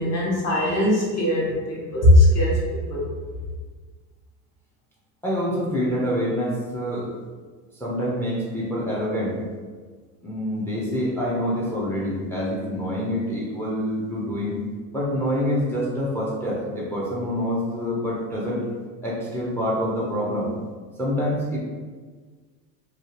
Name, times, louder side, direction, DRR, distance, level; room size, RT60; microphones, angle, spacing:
voice 1, 0.0-3.1, left 1 dB, 35° left, -5 dB, 1.0 m, -19 dB
voice 2, 5.2-7.1 7.8-9.4 10.2-14.6 14.9-18.7 19.0-20.5 21.0-21.6, equal, 5° left, -4 dB, 0.4 m, -26 dB
2.7 x 2.3 x 3.0 m, 1.5 s
supercardioid pair, 125°, 45 cm